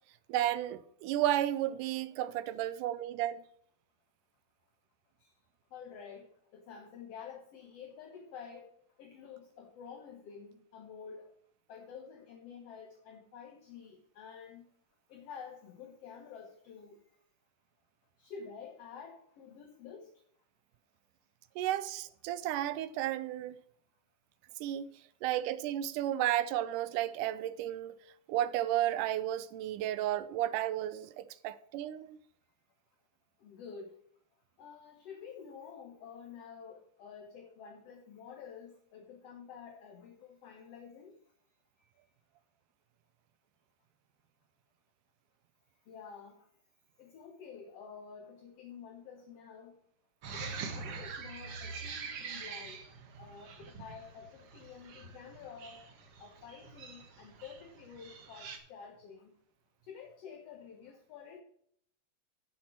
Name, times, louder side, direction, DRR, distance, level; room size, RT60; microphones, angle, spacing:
voice 1, 0.3-3.4 21.6-23.6 24.6-24.9 25.2-27.9 28.3-32.2, right 13 dB, 90° right, 2.2 m, -33 dB
voice 2, 5.7-8.7 9.0-11.3 11.7-14.7 15.1-17.0 18.2-20.1 33.4-34.0 34.6-41.1 45.9-46.5 47.0-49.8 50.3-52.8 53.2-55.8 56.2-59.3 59.8-61.4, left 6 dB, 60° left, 2.1 m, -49 dB
sound 1, 50.2-58.6, right 5 dB, 55° right, 2.0 m, -45 dB
12.0 x 7.4 x 4.5 m
omnidirectional pair, 3.7 m